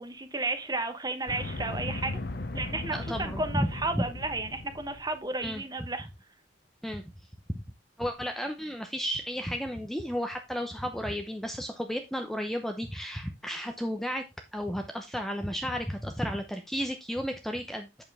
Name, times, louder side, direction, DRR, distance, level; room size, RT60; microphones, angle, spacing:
voice 1, 0.0-2.2 2.5-6.1, right 2 dB, 20° right, 1.1 m, -33 dB
sound 1, 1.3-5.2, left 2 dB, 55° left, 0.9 m, -37 dB
voice 2, 2.9-3.7 3.9-4.0 5.4-5.6 6.8-7.0 7.5-7.6 8.0-14.2 14.5-18.0, equal, ahead, 0.8 m, -33 dB
8.4 x 6.9 x 3.5 m
head